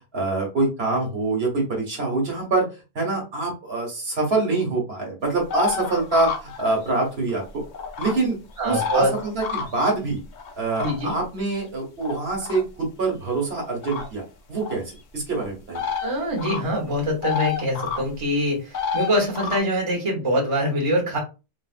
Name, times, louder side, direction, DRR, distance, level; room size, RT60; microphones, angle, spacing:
voice 1, 0.1-2.7 2.9-7.6 8.0-8.4 8.6-10.2 10.6-14.2 14.5-14.8 15.1-15.8, right 3 dB, 65° right, 1 dB, 1.3 m, -25 dB
sound 1, 5.5-7.1 7.3-8.2 8.6-9.9 10.3-11.2 12.0-12.6 13.8-14.1 14.6-14.8 15.7-16.1 16.4-16.6 16.9-18.0 18.7-19.6, left 6 dB, 55° left, 0.6 m, -29 dB
voice 2, 8.6-9.1 10.8-11.2 16.0-21.2, equal, 30° right, -1 dB, 1.0 m, -24 dB
4.6 x 2.1 x 2.4 m, 0.29 s
omnidirectional pair, 1.1 m